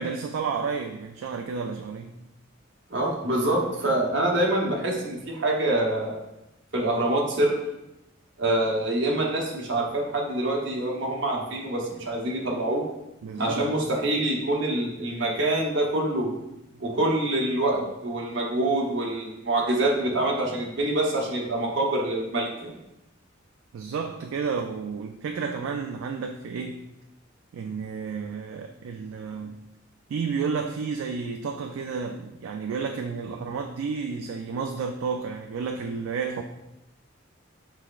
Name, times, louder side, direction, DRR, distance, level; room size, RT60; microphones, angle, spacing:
voice 1, 0.0-2.1 13.2-13.6 16.7-16.9 23.7-26.9 27.5-29.6 30.1-36.4, right 5 dB, 90° right, 4 dB, 0.3 m, -31 dB
voice 2, 2.9-6.2 6.7-7.6 8.4-12.8 13.4-16.3 16.8-22.7, right 1 dB, 65° right, -2 dB, 1.0 m, -25 dB
6.0 x 3.4 x 2.4 m, 0.91 s
head